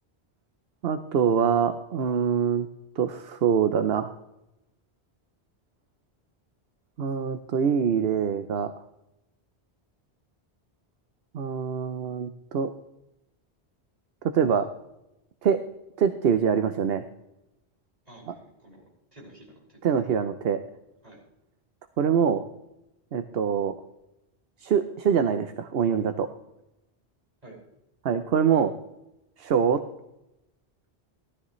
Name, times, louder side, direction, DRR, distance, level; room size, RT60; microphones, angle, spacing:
voice 1, 0.8-2.7 3.0-4.1 7.0-8.7 11.3-12.7 14.2-14.7 15.4-15.6 16.0-17.0 18.3-18.4 19.8-20.6 22.0-22.4 23.1-23.7 24.6-26.3 28.0-28.7 29.4-29.8, right 7 dB, 65° right, 10 dB, 0.9 m, -24 dB
voice 2, 18.1-19.8 20.1-20.2 21.0-21.2 27.4-27.6, right 1 dB, 35° right, -4 dB, 5.5 m, -50 dB
17.0 x 13.0 x 3.2 m, 0.89 s
omnidirectional pair, 1.1 m